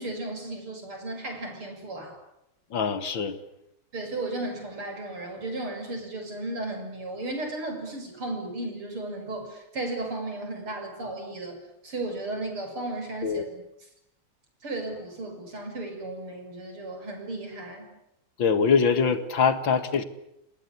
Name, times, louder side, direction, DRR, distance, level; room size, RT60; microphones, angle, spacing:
voice 1, 0.0-2.2 3.9-11.6 11.8-13.6 14.6-17.9, right 2 dB, 90° right, 4 dB, 7.8 m, -35 dB
voice 2, 2.7-3.4 13.2-13.4 18.4-20.0, left 5 dB, 65° left, 12 dB, 2.6 m, -23 dB
29.0 x 19.5 x 9.8 m, 0.84 s
omnidirectional pair, 2.3 m